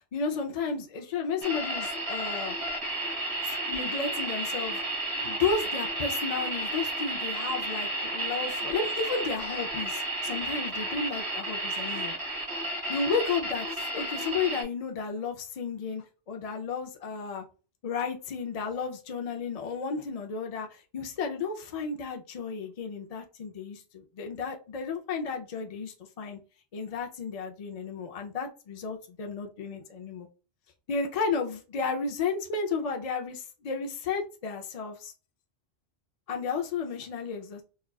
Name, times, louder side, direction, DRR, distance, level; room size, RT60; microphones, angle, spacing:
voice 1, 0.1-2.6 3.4-4.8 5.1-12.1 12.9-17.4 17.8-26.4 26.7-30.3 30.9-35.1 36.3-37.6, left 5 dB, 50° left, 3 dB, 0.5 m, -33 dB
sound 1, 1.4-14.6, right 1 dB, 35° right, 0.9 m, -32 dB
4.2 x 2.3 x 2.3 m, 0.34 s
omnidirectional pair, 1.1 m